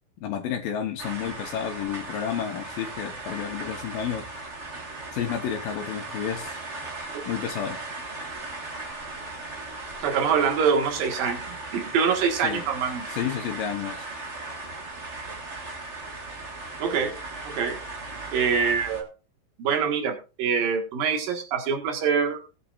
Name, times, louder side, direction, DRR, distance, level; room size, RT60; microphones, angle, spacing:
voice 1, 0.2-4.3 5.1-6.6 7.3-7.8 12.4-12.7 13.1-14.0, left 9 dB, 80° left, 3 dB, 2.7 m, -31 dB
sound 1, 1.0-19.0, right 2 dB, 40° right, 1.0 m, -37 dB
voice 2, 10.0-11.5 11.7-13.1 16.8-17.1 17.4-17.8 18.3-19.1 19.6-22.5, right 6 dB, 75° right, 4 dB, 3.4 m, -25 dB
19.0 x 8.3 x 2.5 m, 0.31 s
omnidirectional pair, 4.1 m